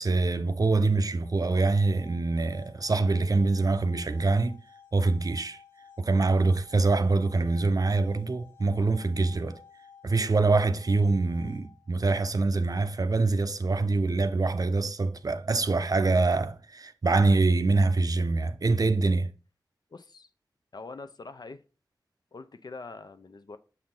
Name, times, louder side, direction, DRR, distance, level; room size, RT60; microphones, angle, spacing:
voice 1, 0.0-4.6 4.9-5.6 6.0-9.6 10.0-19.3, right 3 dB, 50° right, 0.5 m, -25 dB
sound 1, 1.2-12.1, left 6 dB, 35° left, 1.0 m, -55 dB
voice 2, 19.9-20.3 20.7-21.6 22.3-23.6, left 3 dB, 60° left, 0.6 m, -43 dB
6.6 x 4.3 x 3.8 m
cardioid pair, 45°, 8 cm